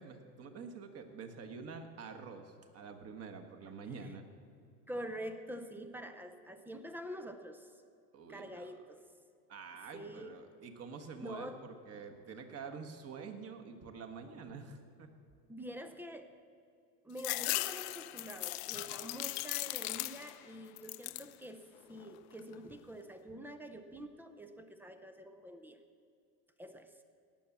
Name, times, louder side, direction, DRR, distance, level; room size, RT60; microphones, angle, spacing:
voice 1, 0.0-4.2 8.1-8.7 9.5-15.1, right 5 dB, 30° right, 5 dB, 1.5 m, -47 dB
voice 2, 4.9-7.7 8.3-9.0 9.9-10.4 11.2-11.6 15.5-16.3 17.0-21.6 21.9-25.8 26.6-26.9, equal, 5° right, 9 dB, 0.5 m, -46 dB
sound 1, 17.2-20.5 20.8-21.4 21.8-22.5, left 21 dB, 45° left, 0.4 m, -38 dB
18.0 x 7.1 x 7.2 m, 2.4 s
supercardioid pair, 130°, 50 cm